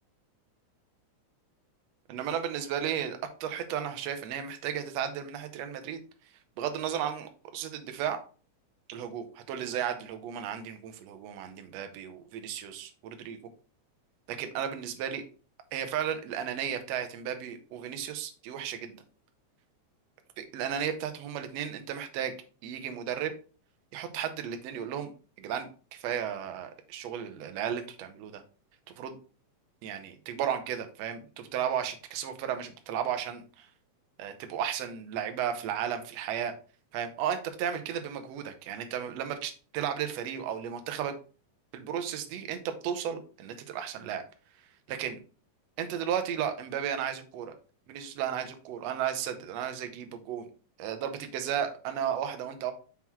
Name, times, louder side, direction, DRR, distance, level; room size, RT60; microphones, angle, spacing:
voice 1, 2.1-6.0 6.6-8.2 8.9-13.4 14.3-15.2 15.7-19.0 20.4-22.3 22.6-23.3 23.9-25.1 25.4-28.4 29.0-29.2 29.8-33.7 34.2-36.5 36.9-41.2 41.7-44.2 44.9-45.2 45.8-47.5 47.9-50.5 50.8-52.7, right 9 dB, 70° right, 7 dB, 1.7 m, -34 dB
6.0 x 3.8 x 4.4 m, 0.37 s
omnidirectional pair, 3.7 m